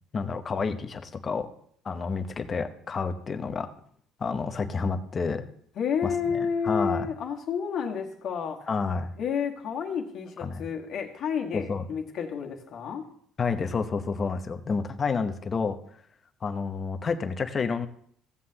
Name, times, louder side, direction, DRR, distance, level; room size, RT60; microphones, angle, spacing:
voice 1, 0.1-1.5 1.8-3.7 4.2-5.4 6.0-6.1 6.6-7.1 8.7-9.1 10.4-10.6 11.5-11.9 13.4-15.8 16.4-17.9, left 5 dB, 30° left, 8 dB, 0.8 m, -29 dB
voice 2, 5.7-8.7 9.2-13.1, left 6 dB, 55° left, 2 dB, 1.5 m, -30 dB
15.5 x 7.5 x 2.8 m, 0.63 s
cardioid pair, 125°, 0 cm